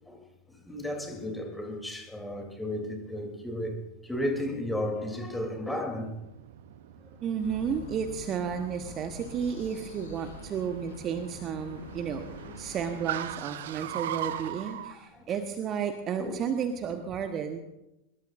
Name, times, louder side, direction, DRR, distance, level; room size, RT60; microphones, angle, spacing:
voice 1, 0.6-3.8 4.0-6.1 14.6-15.3 16.2-16.4, left 1 dB, 5° left, 3.3 m, -34 dB
Car, 6.0-14.9, right 11 dB, 55° right, 0.8 m, -41 dB
voice 2, 7.2-12.2 12.6-17.6, right 7 dB, 30° right, 1.3 m, -32 dB
sound 1, 7.4-13.0, left 4 dB, 60° left, 5.2 m, -46 dB
24.5 x 21.5 x 2.6 m
figure-of-eight pair, 90°, 0 cm